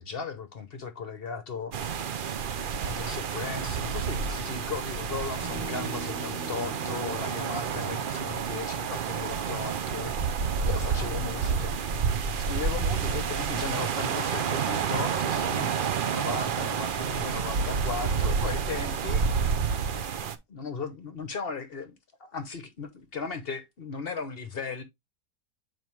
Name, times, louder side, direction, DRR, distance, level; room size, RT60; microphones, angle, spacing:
voice 1, 0.0-1.7 2.8-10.2 10.6-11.8 12.4-19.4 20.5-24.8, left 5 dB, 45° left, 0.9 m, -37 dB
sound 1, 1.7-20.4, right 6 dB, 80° right, 0.4 m, -29 dB
sound 2, 5.4-10.0, equal, 10° right, 0.7 m, -43 dB
7.3 x 4.7 x 3.1 m
omnidirectional pair, 1.7 m